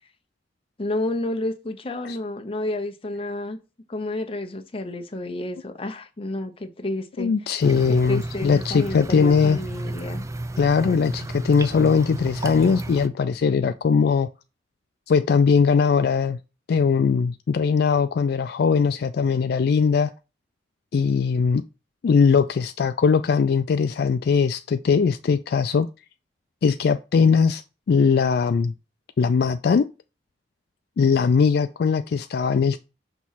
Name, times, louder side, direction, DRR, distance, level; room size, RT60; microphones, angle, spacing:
voice 1, 0.8-3.6 3.9-7.3 8.0-10.3, left 1 dB, 30° left, 0.7 m, -30 dB
voice 2, 7.2-9.6 10.6-14.3 15.1-16.4 16.7-20.1 20.9-21.6 22.0-25.9 26.6-27.6 27.9-28.7 29.2-29.9 31.0-32.8, left 5 dB, 60° left, 0.3 m, -20 dB
sound 1, 7.6-13.1, right 2 dB, 15° right, 0.3 m, -32 dB
5.9 x 3.1 x 5.6 m
head